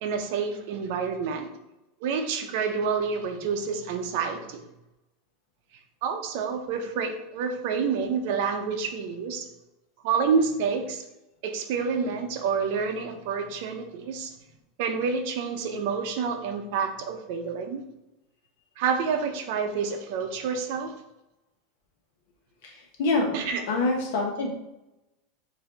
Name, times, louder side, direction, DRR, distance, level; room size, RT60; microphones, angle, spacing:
voice 1, 0.0-1.5 2.0-4.6 6.0-9.5 10.0-11.0 11.4-14.3 14.8-17.8 18.8-20.9 23.3-23.6, right 5 dB, 55° right, 5 dB, 0.6 m, -28 dB
voice 2, 22.6-23.4 23.7-24.5, left 3 dB, 60° left, 0 dB, 1.2 m, -26 dB
5.0 x 2.7 x 3.9 m, 0.93 s
supercardioid pair, 175°, 0 cm